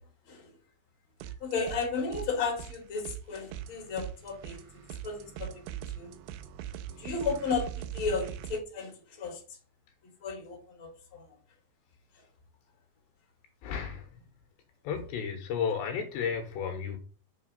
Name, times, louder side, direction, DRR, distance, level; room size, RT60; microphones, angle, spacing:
sound 1, 1.2-1.9 2.1-8.6, right 11 dB, 80° right, 2.5 m, -41 dB
voice 1, 1.4-6.2 7.0-9.4 10.2-11.3, left 4 dB, 30° left, 3.5 m, -34 dB
voice 2, 13.6-14.1 14.9-17.0, left 7 dB, 75° left, 3.4 m, -33 dB
7.0 x 6.3 x 6.6 m
omnidirectional pair, 5.2 m